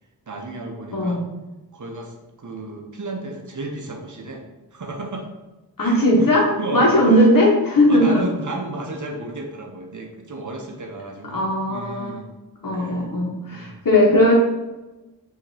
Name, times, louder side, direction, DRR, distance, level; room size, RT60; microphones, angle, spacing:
voice 1, 0.3-1.2 1.7-4.4 4.7-5.3 5.8-6.3 6.6-7.3 7.8-12.3 12.7-13.1 13.5-13.8, right 2 dB, 50° right, 2 dB, 0.7 m, -33 dB
voice 2, 5.8-8.2 11.3-12.1 12.6-14.3, left 1 dB, 55° left, -3 dB, 1.2 m, -18 dB
4.9 x 2.9 x 2.8 m, 1.1 s
wide cardioid pair, 60°, 39 cm